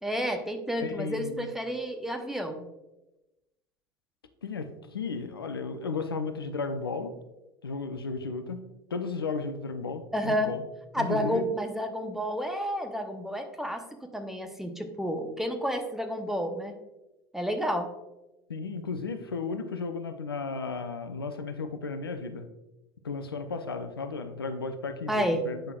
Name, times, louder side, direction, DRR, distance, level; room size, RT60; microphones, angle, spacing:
voice 1, 0.0-2.7 10.1-10.5 10.9-13.8 14.1-16.7 17.3-17.9 25.1-25.4, equal, 5° right, 5 dB, 0.8 m, -30 dB
voice 2, 0.8-1.5 4.4-7.2 7.6-8.6 8.9-10.6 11.0-11.5 18.5-22.5 23.0-25.7, left 4 dB, 85° left, 8 dB, 0.5 m, -34 dB
8.9 x 5.6 x 2.4 m, 1.0 s
figure-of-eight pair, 70°, 12 cm